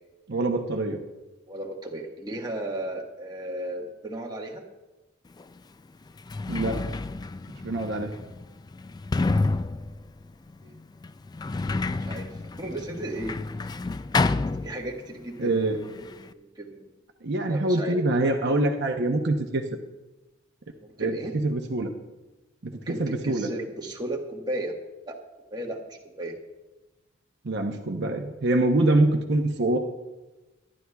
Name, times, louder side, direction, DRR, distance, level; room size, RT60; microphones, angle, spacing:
voice 1, 0.3-1.0 6.5-6.8 7.6-8.1 15.4-15.8 17.2-19.7 21.0-21.9 22.6-23.5 27.4-29.8, right 2 dB, 60° right, 3 dB, 0.9 m, -25 dB
voice 2, 1.5-4.6 10.6-10.7 12.1-12.3 12.6-13.7 14.6-16.9 17.5-18.0 20.8-21.3 22.9-24.7 25.1-25.2 25.5-26.3, right 1 dB, 20° right, -1 dB, 1.4 m, -35 dB
Sliding door, 5.4-5.5 6.1-15.2 15.5-16.3, left 3 dB, 20° left, 0.3 m, -30 dB
24.0 x 11.5 x 2.3 m, 1.1 s
head